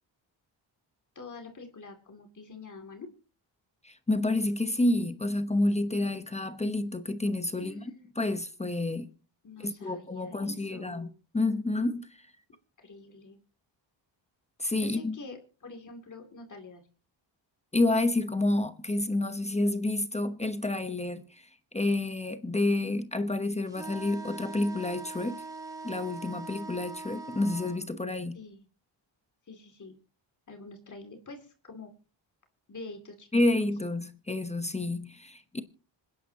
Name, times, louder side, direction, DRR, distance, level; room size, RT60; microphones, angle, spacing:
voice 1, 1.1-3.1 7.5-8.3 9.4-11.1 12.8-13.4 14.8-16.9 28.3-28.7 29.5-30.0 30.5-31.9 32.7-33.3, left 3 dB, 40° left, 2.6 m, -46 dB
voice 2, 3.8-9.1 9.6-12.2 14.6-15.1 17.7-25.4 25.8-28.4 33.3-35.6, left 2 dB, 15° left, 0.9 m, -29 dB
sound 1, 23.7-27.8, right 3 dB, 5° right, 2.9 m, -42 dB
26.5 x 10.5 x 2.8 m
wide cardioid pair, 140°, 46 cm